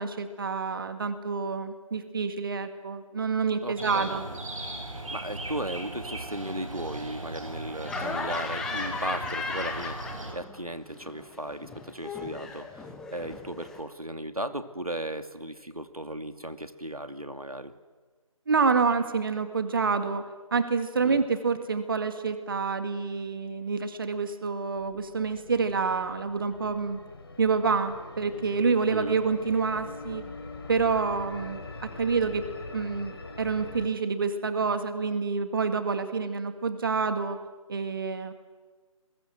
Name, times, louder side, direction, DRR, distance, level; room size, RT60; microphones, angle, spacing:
voice 1, 0.0-4.3 18.5-20.2 20.5-27.0 27.4-30.2 30.7-37.4 37.7-38.3, right 5 dB, 40° right, 9 dB, 2.1 m, -28 dB
voice 2, 3.6-4.4 4.9-12.8 13.1-17.7 21.0-21.2 28.9-29.2, right 1 dB, 85° right, 8 dB, 2.5 m, -36 dB
sound 1, 3.8-10.3, right 2 dB, 65° right, 7.6 m, -38 dB
Laughter, 7.8-10.6 10.9-13.8, left 4 dB, 5° left, 0.9 m, -36 dB
sound 2, 24.8-33.9, left 3 dB, 45° left, 3.1 m, -43 dB
28.0 x 23.0 x 7.8 m, 1.3 s
figure-of-eight pair, 155°, 18 cm